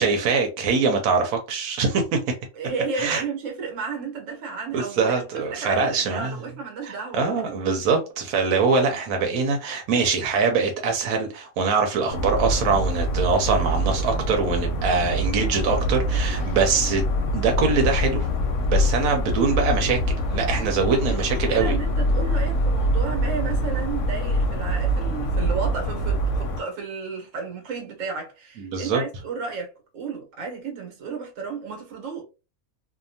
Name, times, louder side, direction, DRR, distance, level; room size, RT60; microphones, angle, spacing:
voice 1, 0.0-2.2 3.0-3.2 4.7-6.4 6.8-18.3 18.6-21.8 28.6-29.0, right 4 dB, 90° right, 1.1 m, -23 dB
voice 2, 2.5-7.5 20.8-32.2, right 5 dB, 65° right, 1.3 m, -33 dB
sound 1, 12.1-26.6, equal, 70° left, 0.8 m, -24 dB
2.7 x 2.2 x 2.6 m
omnidirectional pair, 1.5 m